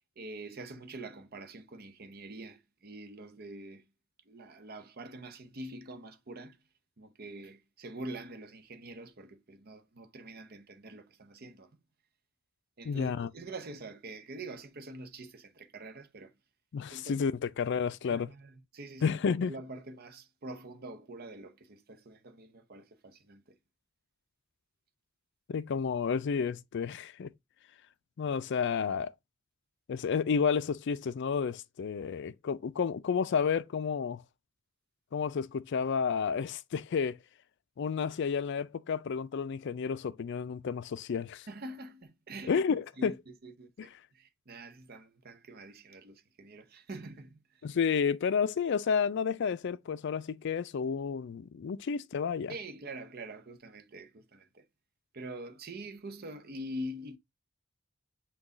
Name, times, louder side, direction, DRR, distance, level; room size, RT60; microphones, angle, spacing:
voice 1, 0.2-3.9 4.3-6.6 7.0-11.8 12.8-16.3 16.9-17.2 18.1-23.6 41.5-42.6 43.0-47.7 52.5-54.6 55.1-57.2, right 1 dB, 50° right, 0.7 m, -45 dB
voice 2, 12.9-13.3 16.7-18.3 19.0-19.5 25.5-27.3 28.2-29.1 29.9-34.2 35.1-37.2 37.8-41.5 42.5-43.2 43.8-43.9 47.6-52.5, left 6 dB, 60° left, 0.4 m, -31 dB
6.0 x 2.3 x 3.7 m
head